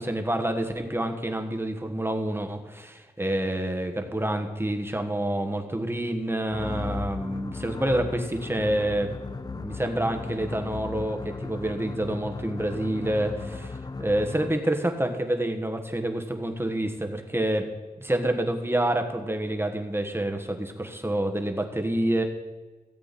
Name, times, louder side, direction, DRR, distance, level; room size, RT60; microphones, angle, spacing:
voice 1, 0.0-9.1 9.4-13.7 14.0-17.7 18.0-22.2, right 1 dB, 15° right, 5 dB, 1.4 m, -28 dB
sound 1, 6.5-14.7, left 3 dB, 25° left, 0.5 m, -36 dB
17.0 x 8.1 x 4.2 m, 1.3 s
cardioid pair, 70°, 16 cm